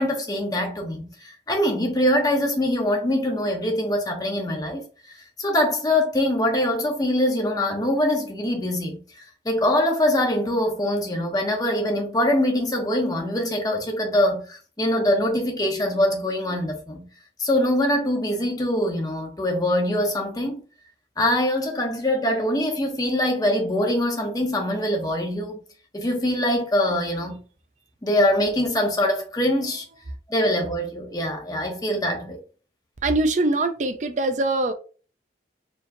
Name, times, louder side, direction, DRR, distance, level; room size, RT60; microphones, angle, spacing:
voice 1, 0.0-9.0 9.4-17.1 17.4-20.6 21.2-25.6 25.9-27.4 28.0-29.8 30.3-32.4, left 1 dB, 20° left, 0.9 m, -23 dB
voice 2, 33.0-34.7, right 2 dB, 45° right, 0.5 m, -22 dB
4.4 x 2.9 x 2.7 m
head